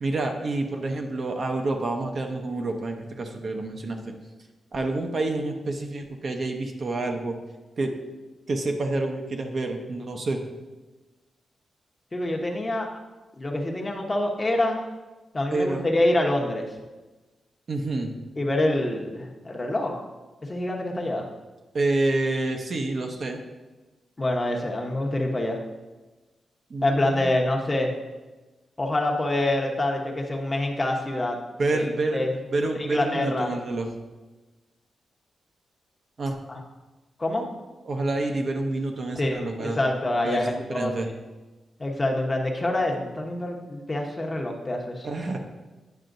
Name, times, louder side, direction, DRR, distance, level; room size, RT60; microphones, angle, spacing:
voice 1, 0.0-4.1 4.7-7.4 7.8-7.9 8.5-10.4 15.5-15.9 17.7-18.1 21.7-23.4 26.7-27.3 31.6-32.2 32.5-33.9 36.2-36.4 37.9-39.8 40.2-41.1 45.0-45.4, right 2 dB, 50° right, 3 dB, 0.7 m, -28 dB
voice 2, 12.1-12.9 13.4-14.8 15.3-16.7 18.4-20.0 20.5-21.2 24.2-25.6 26.8-27.9 28.8-31.4 31.7-31.9 32.1-32.4 32.9-33.5 36.5-36.6 37.2-37.5 39.2-41.1 41.8-45.1, left 1 dB, 25° left, 1 dB, 0.9 m, -26 dB
9.1 x 5.6 x 2.6 m, 1.2 s
cardioid pair, 105°, 0 cm